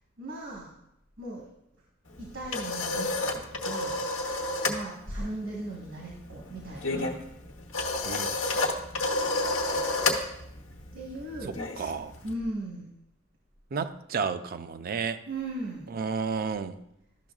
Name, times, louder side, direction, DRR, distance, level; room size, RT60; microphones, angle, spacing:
voice 1, 0.2-0.7 1.2-1.4 2.2-4.0 4.7-7.2 10.9-11.7 12.2-12.9 15.3-15.9, right 1 dB, 70° right, -3 dB, 1.5 m, -37 dB
sound 1, 2.1-4.8 5.1-5.4 5.7-12.3, left 2 dB, 85° left, 1.0 m, -30 dB
voice 2, 11.4-12.1 13.7-15.2 15.9-16.8, right 5 dB, 50° right, 11 dB, 0.4 m, -32 dB
12.0 x 6.0 x 2.4 m, 0.81 s
head